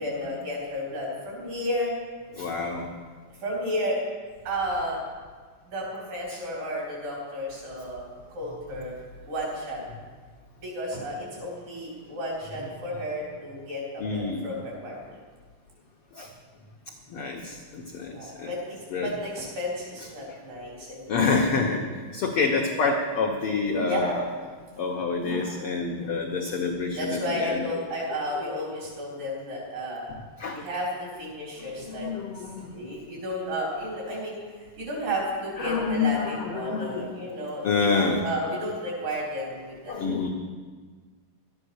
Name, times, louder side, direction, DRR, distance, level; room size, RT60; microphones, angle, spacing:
voice 1, 0.0-1.9 3.4-4.0 4.5-5.0 5.7-8.9 9.3-9.8 10.6-15.2 18.1-21.2 23.9-24.2 27.0-30.1 30.5-32.1 32.4-32.5 32.7-40.0, equal, 80° right, -4 dB, 5.6 m, -32 dB
voice 2, 2.3-2.9 14.0-14.4 16.1-16.3 17.1-18.5 18.9-19.1 21.1-21.8 22.1-24.2 24.8-27.6 30.4-30.6 31.8-32.7 35.6-37.1 37.6-38.2 39.9-40.3, left 4 dB, 85° left, 1 dB, 1.2 m, -27 dB
12.5 x 9.8 x 6.3 m, 1.5 s
omnidirectional pair, 3.8 m